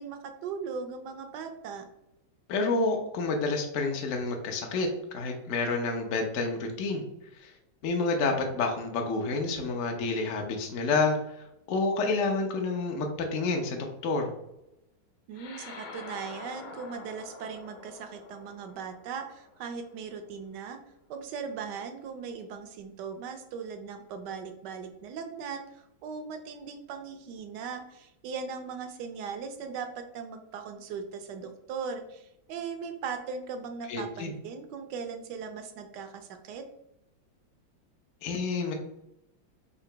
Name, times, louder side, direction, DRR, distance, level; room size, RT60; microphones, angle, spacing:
voice 1, 0.0-1.8 15.3-20.8 21.1-36.6, right 6 dB, 70° right, 7 dB, 1.1 m, -39 dB
voice 2, 2.5-7.0 7.4-7.5 7.8-11.4 11.7-14.3 33.9-34.3 38.2-38.7, left 3 dB, 65° left, 2 dB, 0.7 m, -29 dB
sound 1, 15.3-20.1, left 4 dB, 80° left, 1.5 m, -46 dB
3.9 x 2.8 x 4.4 m, 0.85 s
omnidirectional pair, 2.2 m